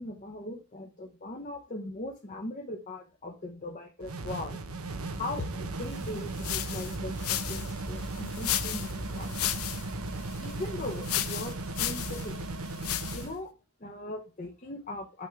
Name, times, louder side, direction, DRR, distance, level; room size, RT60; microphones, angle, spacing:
voice 1, 0.0-4.6 5.2-9.4 10.4-12.4 13.1-13.5 13.8-15.3, left 2 dB, 35° left, 2 dB, 0.9 m, -39 dB
sound 1, 4.0-13.4, right 2 dB, 80° right, 0.8 m, -37 dB
sound 2, 6.0-13.4, left 11 dB, 80° left, 0.6 m, -35 dB
5.9 x 3.6 x 5.9 m, 0.32 s
head